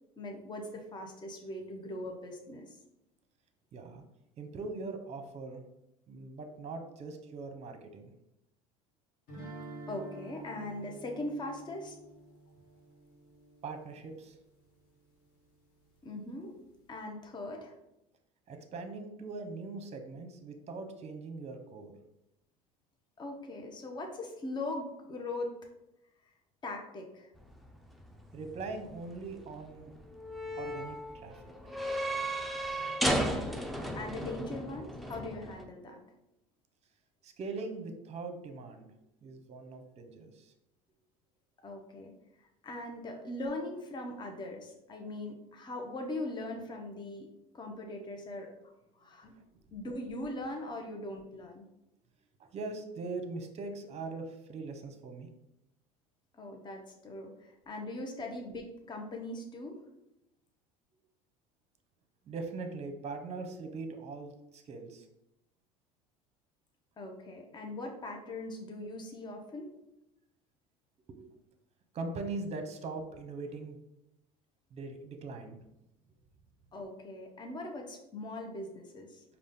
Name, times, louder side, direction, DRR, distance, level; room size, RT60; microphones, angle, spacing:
voice 1, 0.2-2.8 9.9-12.0 16.0-16.6 16.9-17.7 23.2-25.5 26.6-27.3 33.0-33.6 33.9-36.0 41.6-42.1 42.6-47.3 47.5-49.3 49.7-51.7 56.3-59.8 67.0-69.7 76.7-79.2, left 2 dB, 25° left, 2 dB, 0.8 m, -40 dB
voice 2, 3.7-4.0 4.4-5.6 6.1-8.1 13.6-14.4 18.5-21.9 28.3-29.9 30.5-31.4 37.2-38.9 39.2-40.5 49.3-49.4 52.4-55.3 62.3-65.1 71.1-71.3 71.9-73.8 74.7-75.6, right 3 dB, 35° right, 6 dB, 0.8 m, -41 dB
sound 1, 9.3-14.2, right 2 dB, 55° left, 1.4 m, -49 dB
sound 2, 27.4-35.7, right 1 dB, ahead, 0.6 m, -36 dB
4.9 x 2.4 x 3.7 m, 0.86 s
hypercardioid pair, 75°, 18 cm